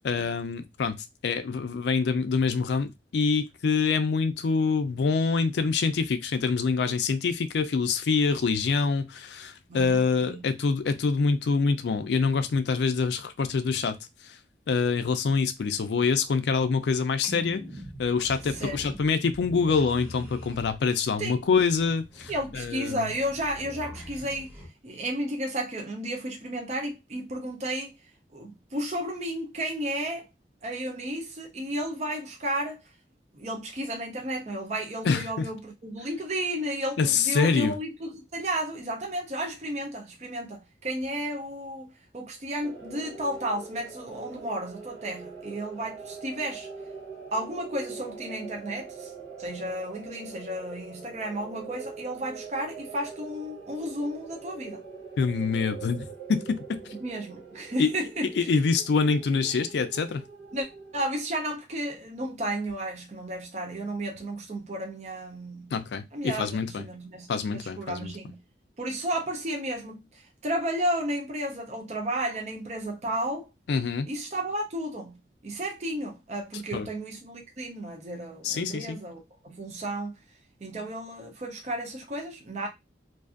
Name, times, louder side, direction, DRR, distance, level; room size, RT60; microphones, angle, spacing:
voice 1, 0.0-14.4 14.7-17.6 18.0-23.1 35.0-35.5 37.0-37.7 55.2-56.9 57.8-57.9 58.2-60.2 65.7-66.8 67.3-68.1 73.7-74.1 76.7-76.9 78.4-79.0, left 5 dB, 75° left, 0.4 m, -26 dB
voice 2, 9.7-10.4 18.6-18.8 21.2-21.4 22.3-24.5 24.8-27.9 28.3-30.3 30.6-32.8 33.3-46.7 47.3-49.1 49.4-54.8 57.0-58.5 60.5-60.7 60.9-65.7 66.1-68.4 68.8-73.5 74.1-75.2 75.4-79.2 79.5-80.1 80.6-82.7, right 1 dB, 40° right, 0.5 m, -33 dB
sound 1, 17.2-24.7, equal, 10° right, 0.8 m, -43 dB
sound 2, 42.6-61.1, right 5 dB, 75° right, 1.0 m, -43 dB
2.5 x 2.4 x 2.4 m
head